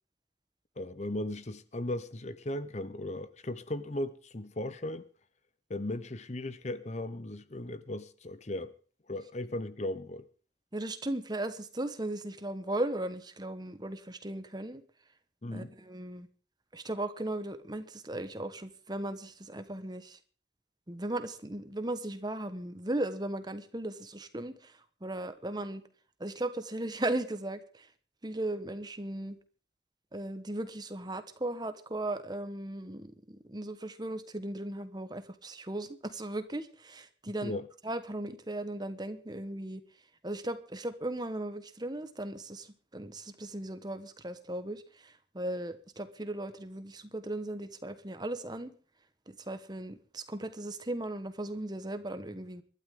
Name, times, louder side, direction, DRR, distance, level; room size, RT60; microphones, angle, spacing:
voice 1, 0.8-5.1 5.7-8.7 9.1-10.3 15.4-15.8 37.4-37.7, left 1 dB, 35° left, 0.8 m, -37 dB
voice 2, 10.7-14.8 15.5-16.3 16.7-20.2 20.9-24.7 25.0-25.8 26.2-27.9 28.2-29.4 30.1-37.5 37.8-39.8 40.2-42.7 42.9-48.7 49.3-52.6, right 1 dB, 20° right, 1.2 m, -37 dB
24.0 x 12.5 x 3.7 m
head